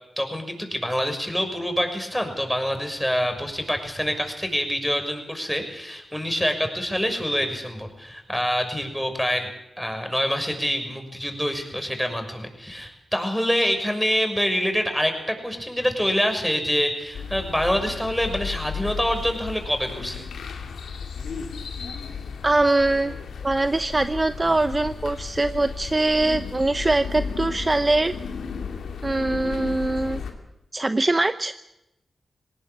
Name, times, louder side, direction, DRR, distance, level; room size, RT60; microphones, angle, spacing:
voice 1, 0.2-9.5 9.8-20.2, equal, 5° left, 5 dB, 6.5 m, -26 dB
sound 1, 17.1-30.3, left 6 dB, 80° left, 2.5 m, -34 dB
voice 2, 22.4-23.1 23.4-28.1 29.0-30.2 30.7-31.5, right 2 dB, 30° right, 11 dB, 0.8 m, -22 dB
19.0 x 18.5 x 8.6 m, 0.89 s
supercardioid pair, 40°, 0 cm